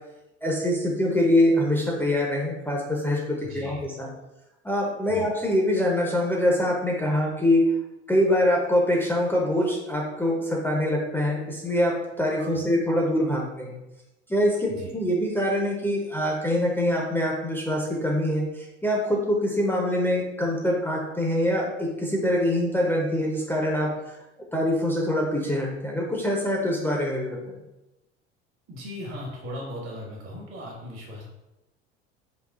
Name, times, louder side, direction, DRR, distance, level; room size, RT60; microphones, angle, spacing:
voice 1, 0.4-4.1 4.6-7.6 8.1-13.8 14.3-24.2 24.5-27.6, left 1 dB, 5° left, -3 dB, 0.5 m, -24 dB
voice 2, 3.5-3.9 5.1-5.3 12.4-12.7 14.7-14.9 28.7-31.2, equal, 65° right, -2 dB, 1.3 m, -38 dB
3.8 x 2.4 x 2.4 m, 0.96 s
figure-of-eight pair, 70°, 35 cm